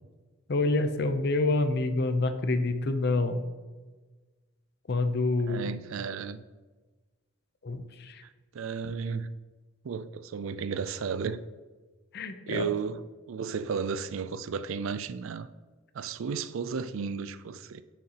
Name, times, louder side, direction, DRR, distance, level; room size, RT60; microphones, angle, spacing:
voice 1, 0.5-3.4 4.9-5.7 7.6-8.2 12.1-12.6, left 2 dB, 50° left, 9 dB, 0.6 m, -27 dB
voice 2, 5.4-6.4 8.2-9.3 9.8-11.4 12.5-15.5 15.9-17.8, right 5 dB, 65° right, 14 dB, 0.4 m, -34 dB
9.5 x 6.3 x 2.9 m, 1.3 s
head